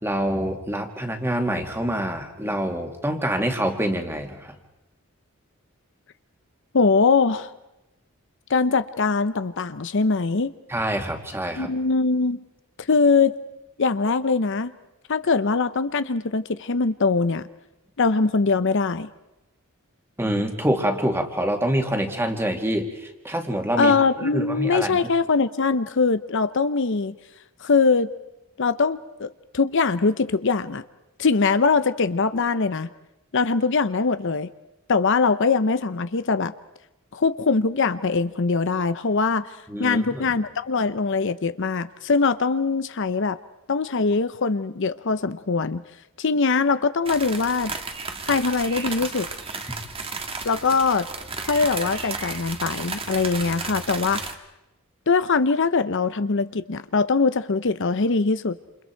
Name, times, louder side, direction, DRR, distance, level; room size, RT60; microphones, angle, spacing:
voice 1, 0.0-4.6 10.7-11.7 20.2-25.0 39.7-40.3, right 1 dB, 10° right, 4 dB, 2.3 m, -26 dB
voice 2, 6.7-7.5 8.5-10.5 11.6-12.4 12.8-13.3 13.8-14.7 15.1-17.5 18.0-19.1 23.8-27.1 27.6-28.1 28.6-30.8 31.2-32.9 33.3-34.5 34.9-36.5 37.1-39.5 39.8-43.4 43.7-45.8 46.2-47.7 48.2-49.3 50.4-51.1 51.5-54.3 55.1-58.6, left 4 dB, 60° left, 12 dB, 0.7 m, -22 dB
sound 1, 47.1-54.3, right 4 dB, 25° right, 1.6 m, -33 dB
28.5 x 28.5 x 4.6 m, 0.94 s
head